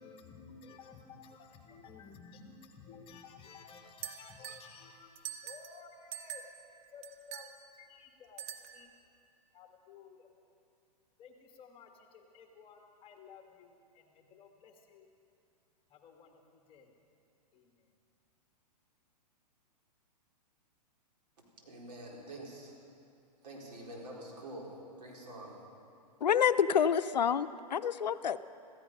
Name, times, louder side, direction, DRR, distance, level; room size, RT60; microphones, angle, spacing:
voice 1, 0.0-6.4 6.9-8.4 8.7-8.9 9.5-10.3 11.2-15.1 15.9-16.9 17.5-17.9, left 5 dB, 25° left, 4 dB, 1.5 m, -54 dB
sound 1, 4.0-4.7 5.2-5.8 6.1-6.6 7.0-7.5 8.4-8.9, right 10 dB, 40° right, 1.1 m, -44 dB
voice 2, 21.6-22.7 23.4-24.7 25.0-25.6, right 1 dB, 75° right, -3 dB, 4.5 m, -46 dB
voice 3, 26.2-28.4, left 8 dB, 85° left, 13 dB, 0.6 m, -28 dB
15.5 x 15.0 x 5.5 m, 2.5 s
hypercardioid pair, 120°, 21 cm